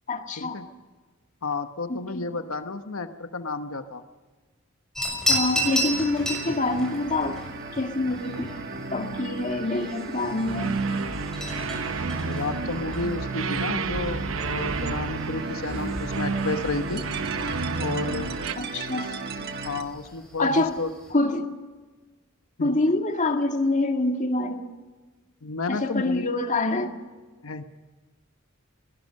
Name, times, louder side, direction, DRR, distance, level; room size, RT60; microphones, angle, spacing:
voice 1, 0.1-0.6 1.9-2.2 5.3-7.4 7.7-8.5 8.9-10.7 18.6-19.1 20.4-20.7 21.1-21.5 22.6-24.7 25.7-26.9, left 2 dB, 35° left, 5 dB, 1.9 m, -26 dB
voice 2, 1.4-4.0 12.2-17.0 17.8-18.3 18.9-19.2 19.6-20.9 22.6-22.8 25.4-26.2 27.4-27.6, left 3 dB, 80° left, 8 dB, 1.1 m, -32 dB
sound 1, 4.9-21.1, equal, 5° left, 6.6 m, -35 dB
sound 2, 5.5-19.8, right 3 dB, 50° right, 1.6 m, -36 dB
sound 3, 10.5-18.5, right 4 dB, 70° right, 0.9 m, -30 dB
22.5 x 19.0 x 6.5 m, 1.3 s
head